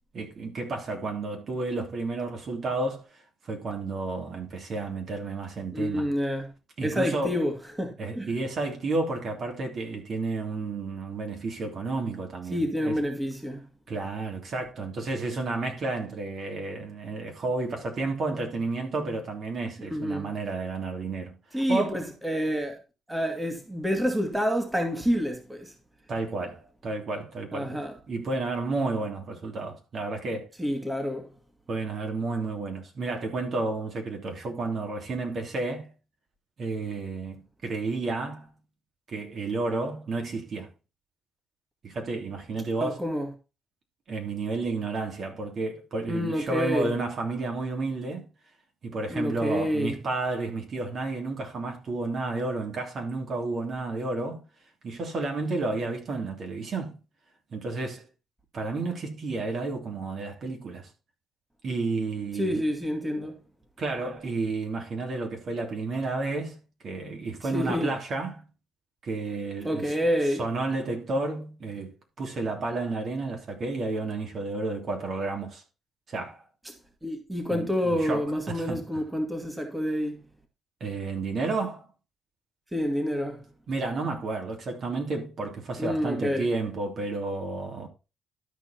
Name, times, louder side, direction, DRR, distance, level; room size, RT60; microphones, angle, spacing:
voice 1, 0.1-6.1 6.8-7.4 8.0-13.0 13.9-22.1 26.1-27.8 28.1-30.5 31.7-35.9 36.6-38.5 39.1-40.7 41.8-43.0 44.1-48.3 48.8-54.4 54.8-57.0 57.5-58.0 58.5-60.9 61.6-62.6 63.8-66.6 66.8-68.4 69.0-69.9 70.2-75.6 76.1-76.4 77.5-79.0 80.8-81.9 83.7-87.9, right 3 dB, 55° right, 3.1 m, -31 dB
voice 2, 5.7-6.5 6.8-8.3 12.5-13.6 19.9-20.3 21.5-22.8 23.1-25.7 27.5-28.0 30.6-31.3 42.8-43.3 46.1-46.9 49.1-50.0 62.4-63.4 67.5-68.0 69.6-70.4 76.7-76.8 77.0-80.3 82.7-83.4 85.8-86.5, equal, 10° right, 2.0 m, -28 dB
12.5 x 4.9 x 4.3 m
cardioid pair, 90°, 0 cm